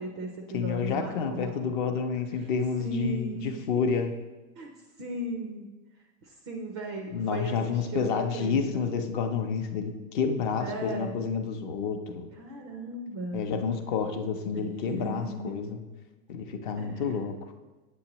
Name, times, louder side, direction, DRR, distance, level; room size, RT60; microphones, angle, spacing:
voice 1, 0.0-1.5 2.3-2.5 2.8-3.6 4.6-4.7 5.0-5.7 6.2-8.9 10.6-11.2 12.4-13.4 14.5-15.5 16.8-17.1, right 2 dB, 25° right, 2 dB, 0.3 m, -36 dB
voice 2, 0.5-4.1 7.1-12.3 13.3-15.8 16.3-17.3, left 6 dB, 40° left, 7 dB, 0.6 m, -29 dB
8.3 x 7.8 x 2.9 m, 1.2 s
supercardioid pair, 165°, 39 cm